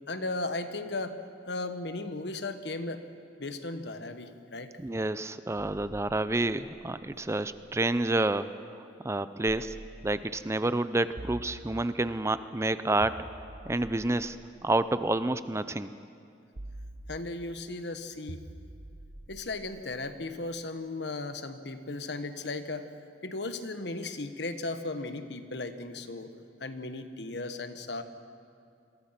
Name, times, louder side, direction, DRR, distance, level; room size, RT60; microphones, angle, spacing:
voice 1, 0.1-1.2 1.5-3.0 3.4-4.7 17.1-18.4 19.3-22.9 23.2-26.3 26.6-28.0, left 2 dB, 65° left, 9 dB, 1.4 m, -36 dB
voice 2, 4.8-8.5 9.0-9.8 10.0-13.3 13.7-14.4 14.6-15.9, right 2 dB, 15° right, 13 dB, 0.5 m, -29 dB
sound 1, 7.7-8.3 9.4-10.5 11.2-12.3 13.0-15.3 16.5-17.6 18.3-20.4, right 1 dB, 40° right, 0.9 m, -47 dB
27.5 x 23.0 x 5.9 m, 2.4 s
head